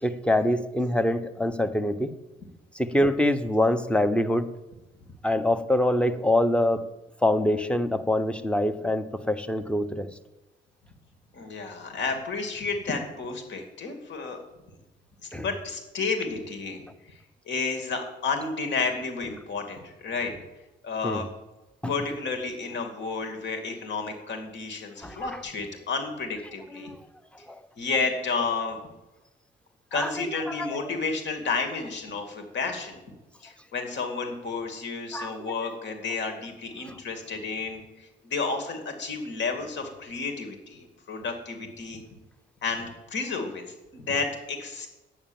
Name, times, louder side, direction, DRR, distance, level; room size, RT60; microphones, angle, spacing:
voice 1, 0.0-2.1 2.7-4.5 5.2-6.8 7.2-10.1 15.3-15.5 21.0-21.2 21.8-21.9 25.0-25.2 26.7-27.0 27.5-27.6 29.9-30.8 35.1-35.3, left 1 dB, 5° left, 11 dB, 1.0 m, -25 dB
voice 2, 11.3-14.4 15.2-16.8 17.5-20.3 20.8-21.2 21.9-26.9 27.8-28.8 29.9-33.0 33.4-42.0 42.6-44.9, left 4 dB, 65° left, 5 dB, 2.5 m, -31 dB
10.5 x 8.8 x 7.2 m, 1.0 s
cardioid pair, 90°, 20 cm